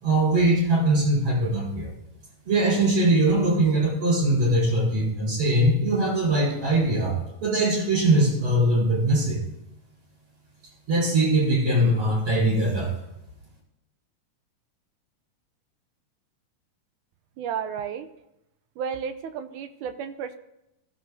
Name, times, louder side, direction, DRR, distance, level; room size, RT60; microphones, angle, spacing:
voice 1, 0.0-1.9 2.5-9.4 10.9-12.9, right 1 dB, 55° right, -6 dB, 5.6 m, -21 dB
voice 2, 17.4-18.1 18.8-20.4, right 7 dB, 75° right, 9 dB, 2.0 m, -32 dB
21.5 x 15.0 x 2.7 m, 0.86 s
omnidirectional pair, 3.8 m